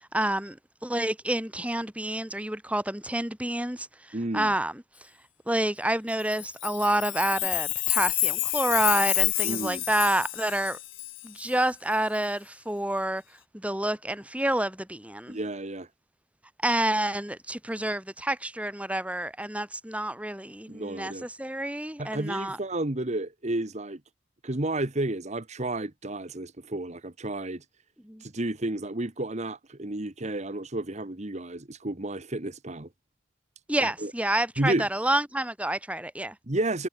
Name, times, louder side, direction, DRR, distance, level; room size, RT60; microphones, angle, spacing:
voice 1, 0.1-0.6 0.8-4.8 5.5-10.8 11.2-13.2 13.5-15.4 16.6-22.6 28.0-28.2 33.7-36.3, right 1 dB, 5° right, 3.2 m, -28 dB
voice 2, 4.1-4.5 9.4-9.8 15.3-15.9 20.7-21.3 22.0-24.0 24.4-27.6 28.2-32.9 33.8-34.1 34.6-34.9 36.5-36.9, right 2 dB, 35° right, 1.3 m, -31 dB
Chime, 6.3-11.5, left 18 dB, 70° left, 2.0 m, -28 dB
head